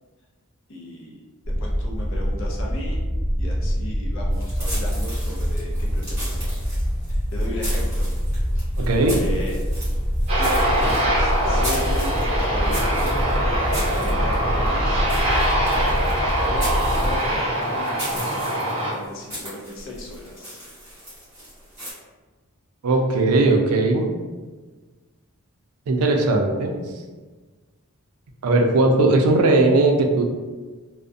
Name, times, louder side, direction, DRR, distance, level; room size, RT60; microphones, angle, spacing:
voice 1, 0.7-1.2 1.6-3.0 3.4-6.6 7.1-8.1 8.6-8.7 9.2-9.6 10.4-15.0 16.4-20.6, left 1 dB, 60° left, -2 dB, 0.5 m, -36 dB
sound 1, 1.4-17.2, equal, 35° left, 1.0 m, -25 dB
sound 2, 4.3-21.9, equal, 10° right, 1.2 m, -37 dB
voice 2, 8.8-9.2 22.8-24.1 25.9-26.8 28.4-30.2, right 2 dB, 80° right, 3 dB, 0.4 m, -18 dB
Aircraft, 10.3-18.9, right 1 dB, 25° right, 0.6 m, -23 dB
2.4 x 2.1 x 2.5 m, 1.3 s
head